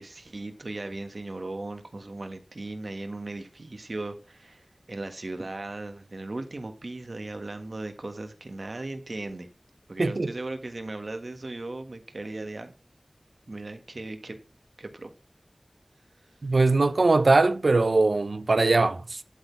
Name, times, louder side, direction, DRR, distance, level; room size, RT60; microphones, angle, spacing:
voice 1, 0.0-4.6 4.9-9.5 9.9-12.7 13.5-14.4 14.8-15.1, right 2 dB, 70° right, 1.5 m, -37 dB
voice 2, 10.0-10.3 16.4-19.2, right 3 dB, 85° right, 0.6 m, -21 dB
11.5 x 4.2 x 5.6 m
wide cardioid pair, 50°, 0 cm